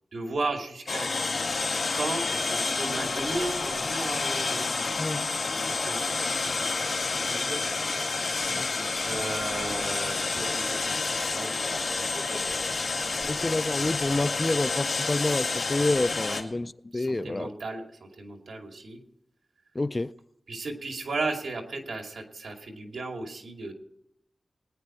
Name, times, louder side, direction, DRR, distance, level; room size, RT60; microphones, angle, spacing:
voice 1, 0.1-1.1 1.9-5.0 5.6-7.7 9.0-12.6 12.9-13.3 16.3-16.4 16.9-19.0 20.5-23.7, right 3 dB, 80° right, 2.4 m, -36 dB
sound 1, 0.9-16.4, left 3 dB, 55° left, 2.1 m, -29 dB
voice 2, 8.5-8.9 13.3-17.5 19.8-20.1, left 2 dB, 25° left, 0.4 m, -28 dB
20.5 x 9.9 x 4.4 m
wide cardioid pair, 115°, 0 cm